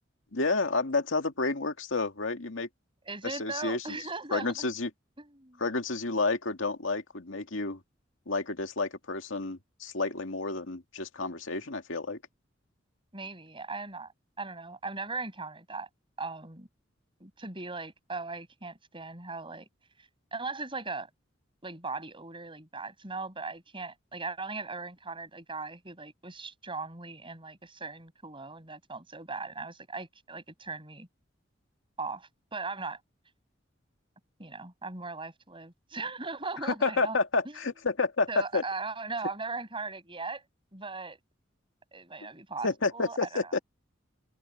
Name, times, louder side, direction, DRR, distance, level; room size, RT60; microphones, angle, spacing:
voice 1, 0.3-2.7 3.4-3.8 4.3-4.9 5.6-7.8 8.3-12.2 36.6-38.6 42.6-43.6, left 3 dB, 85° left, 2.2 m, -30 dB
voice 2, 3.0-4.7 5.2-5.6 13.1-14.1 14.4-15.9 16.2-16.7 17.2-19.7 20.0-21.1 21.6-31.1 32.0-33.0 34.4-37.2 37.4-37.6 38.3-40.4 40.7-41.2 41.9-43.5, right 3 dB, 25° right, 7.4 m, -38 dB
open air
head